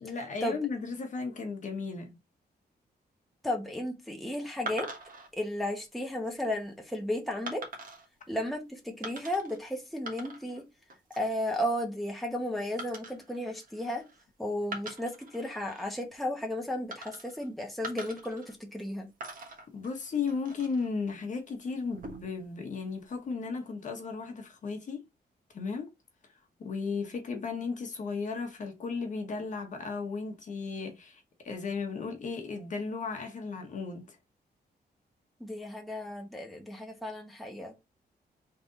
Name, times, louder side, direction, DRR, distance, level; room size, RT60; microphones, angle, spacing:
voice 1, 0.0-2.1 19.7-25.0 25.5-25.9 26.6-34.2, left 4 dB, 45° left, 1.1 m, -35 dB
voice 2, 3.4-4.9 5.3-7.6 8.3-10.6 11.2-14.0 14.4-19.1 35.4-37.8, left 1 dB, ahead, 0.9 m, -34 dB
sound 1, 4.7-5.3 6.0-6.3 7.5-8.1 9.0-9.6 9.9-10.6 10.9-11.3 12.8-14.2 14.6-15.9 16.9-17.5 17.8-18.9 19.2-20.9 21.8-22.4, right 2 dB, 55° right, 1.3 m, -43 dB
3.8 x 3.4 x 3.9 m
wide cardioid pair, 165°, 17 cm